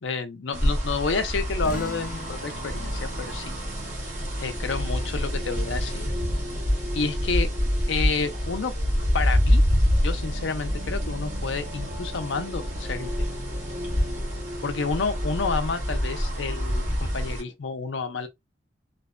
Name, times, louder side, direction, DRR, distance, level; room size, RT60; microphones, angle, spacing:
voice 1, 0.0-3.5 4.4-6.1 6.9-7.5 7.9-8.7 9.1-9.6 10.0-13.1 14.6-18.3, left 4 dB, 85° left, 0.5 m, -29 dB
sound 1, 0.5-17.4, equal, 40° right, 1.2 m, -27 dB
sound 2, 1.6-6.7, left 2 dB, 45° left, 0.7 m, -43 dB
sound 3, 2.3-17.5, equal, 70° right, 0.7 m, -41 dB
2.6 x 2.1 x 2.4 m
head